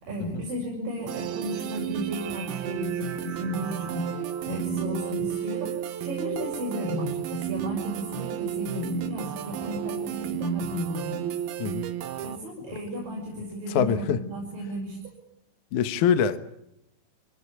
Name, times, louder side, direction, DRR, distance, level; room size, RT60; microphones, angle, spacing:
voice 1, 0.0-11.3 12.2-15.0, equal, 50° right, 7.7 m, -33 dB
sound 1, 1.1-12.4, right 11 dB, 70° right, 2.9 m, -33 dB
voice 2, 13.7-14.2 15.7-16.4, left 8 dB, 65° left, 2.1 m, -23 dB
26.5 x 18.0 x 9.9 m
omnidirectional pair, 5.0 m